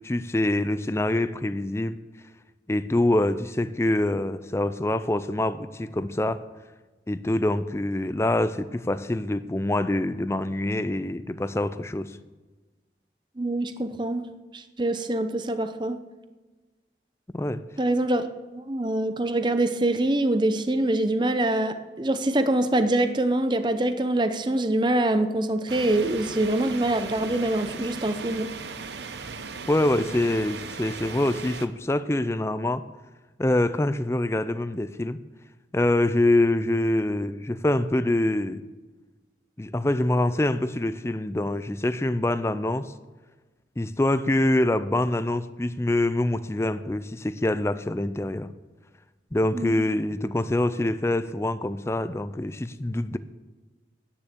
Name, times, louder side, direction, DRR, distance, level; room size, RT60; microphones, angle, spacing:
voice 1, 0.0-2.0 2.7-6.4 7.1-12.2 17.3-17.6 29.7-32.8 33.4-35.2 35.7-38.6 39.6-42.9 43.8-48.5 49.3-53.2, left 1 dB, 15° left, 13 dB, 0.4 m, -25 dB
voice 2, 13.4-14.3 14.5-16.0 17.8-28.5 49.5-49.8, right 1 dB, 25° right, 10 dB, 0.7 m, -25 dB
sound 1, 25.7-31.7, right 4 dB, 75° right, 0.8 m, -38 dB
10.0 x 9.6 x 6.9 m, 1.2 s
head